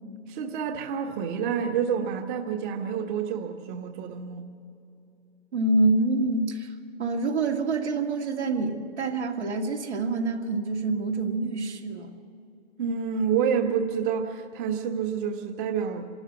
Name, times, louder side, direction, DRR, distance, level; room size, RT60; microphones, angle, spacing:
voice 1, 0.3-4.4 12.8-16.0, right 7 dB, 50° right, 4 dB, 1.4 m, -28 dB
voice 2, 5.5-6.7 7.0-12.2, right 3 dB, 85° right, 1 dB, 2.2 m, -26 dB
26.5 x 12.5 x 7.7 m, 2.8 s
hypercardioid pair, 110°, 33 cm